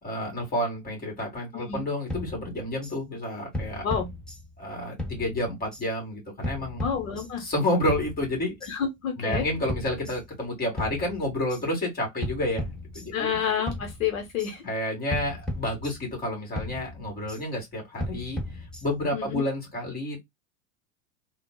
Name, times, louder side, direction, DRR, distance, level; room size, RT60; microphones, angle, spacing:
voice 1, 0.0-3.8 4.6-6.8 7.4-8.6 9.1-12.7 12.9-13.3 14.6-18.4 18.8-20.2, left 1 dB, 20° left, 1.9 m, -30 dB
sound 1, 2.1-3.0 3.5-4.7 5.0-5.9 6.4-7.5 7.9-8.7 9.3-10.5 10.8-11.6 12.2-13.4 13.7-14.5 15.1-16.3 16.6-17.4 18.0-19.2, left 1 dB, ahead, 0.4 m, -36 dB
voice 2, 6.8-7.5 8.7-9.5 13.1-14.6 19.1-19.4, left 7 dB, 75° left, 1.0 m, -29 dB
3.6 x 2.4 x 2.2 m
hypercardioid pair, 90°, 41 cm